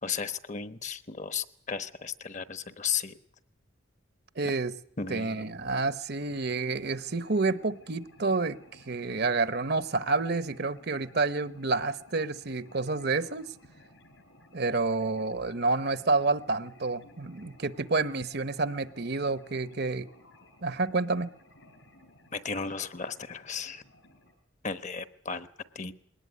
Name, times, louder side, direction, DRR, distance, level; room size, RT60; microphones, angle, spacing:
voice 1, 0.0-3.2 5.0-5.5 22.3-23.8 24.6-25.5 25.7-25.9, left 6 dB, 35° left, 12 dB, 1.0 m, -35 dB
voice 2, 4.4-4.7 5.1-8.6 8.9-13.5 14.5-20.1 20.6-21.3, right 3 dB, 55° right, 14 dB, 0.9 m, -29 dB
sound 1, 6.2-24.3, left 1 dB, 75° left, 4.8 m, -57 dB
21.5 x 18.5 x 9.5 m, 0.68 s
head